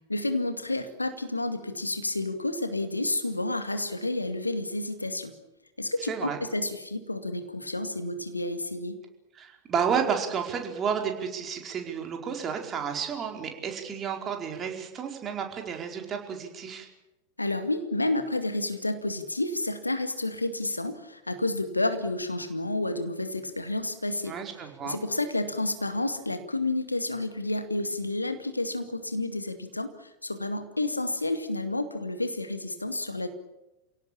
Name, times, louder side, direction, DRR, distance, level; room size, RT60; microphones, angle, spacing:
voice 1, 0.1-5.3 5.8-9.0 17.4-24.3 24.8-33.3, left 2 dB, 85° left, 9 dB, 2.1 m, -30 dB
voice 2, 6.1-6.4 9.4-16.9 24.3-25.0, right 7 dB, 25° right, 3 dB, 4.7 m, -31 dB
28.0 x 17.5 x 8.9 m, 1.0 s
figure-of-eight pair, 90°, 0 cm